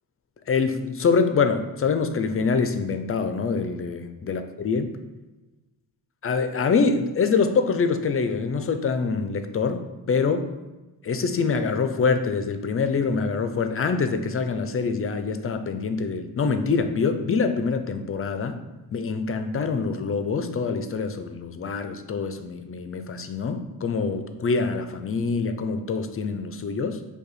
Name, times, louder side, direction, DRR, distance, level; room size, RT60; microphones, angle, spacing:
voice 1, 0.5-5.0 6.2-10.5 11.0-18.6 18.9-27.0, left 5 dB, 35° left, 8 dB, 0.4 m, -25 dB
5.4 x 2.3 x 4.1 m, 1.1 s
cardioid pair, 85°, 39 cm